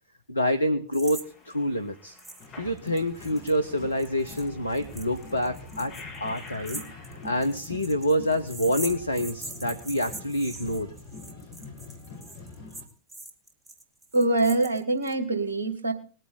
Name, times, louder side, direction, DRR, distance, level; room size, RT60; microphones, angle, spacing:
voice 1, 0.3-1.2 1.4-2.2 2.6-5.9 6.2-6.8 7.2-10.9, equal, 80° left, 8 dB, 0.9 m, -27 dB
sound 1, 0.9-1.3 1.5-1.6 2.2-2.5 2.8-15.1, right 2 dB, 15° right, 2.1 m, -42 dB
sound 2, 1.1-7.4, left 3 dB, 30° left, 6.8 m, -49 dB
sound 3, 2.4-12.9, left 2 dB, 50° left, 3.4 m, -44 dB
voice 2, 14.1-15.9, right 2 dB, 70° right, 8 dB, 2.1 m, -24 dB
20.5 x 9.1 x 4.0 m, 0.39 s
figure-of-eight pair, 90°, 0 cm